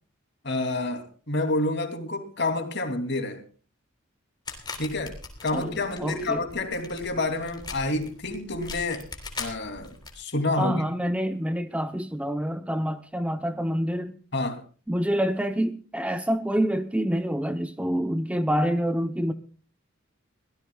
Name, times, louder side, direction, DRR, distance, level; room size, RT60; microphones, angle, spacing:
voice 1, 0.4-3.4 4.8-5.1 5.4-9.0 9.4-10.8 14.3-14.6, left 2 dB, 55° left, 2.9 m, -28 dB
sound 1, 4.4-10.1, left 4 dB, 20° left, 3.7 m, -40 dB
voice 2, 5.5-6.4 10.6-14.1 14.9-19.3, equal, 5° right, 0.8 m, -27 dB
23.5 x 17.5 x 2.4 m
head